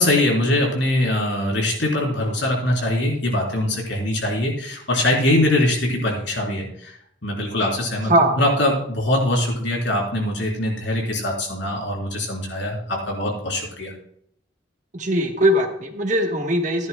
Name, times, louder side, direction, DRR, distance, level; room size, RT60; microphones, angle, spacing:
voice 1, 0.0-6.9 7.2-8.1 8.4-13.9, left 1 dB, 75° left, -1 dB, 3.8 m, -22 dB
voice 2, 8.1-8.4 14.9-16.9, right 1 dB, 40° right, 3 dB, 1.3 m, -20 dB
14.5 x 10.5 x 2.3 m, 0.69 s
head